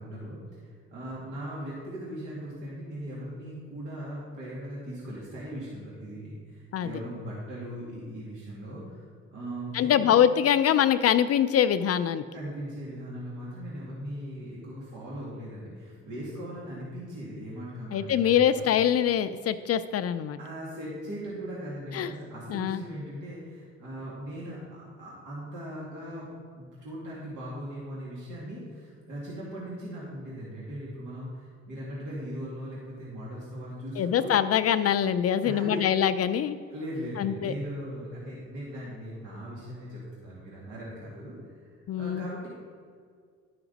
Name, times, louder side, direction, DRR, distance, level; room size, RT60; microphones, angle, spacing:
voice 1, 0.0-10.2 12.3-18.7 20.4-34.3 35.4-35.9 36.7-42.5, equal, 80° right, -6 dB, 2.2 m, -39 dB
voice 2, 9.7-12.2 17.9-20.4 21.9-22.1 22.5-22.8 34.0-36.6 37.2-37.5 41.9-42.3, left 9 dB, 55° left, 11 dB, 0.4 m, -24 dB
11.0 x 5.9 x 4.0 m, 2.1 s
cardioid pair, 90°, 30 cm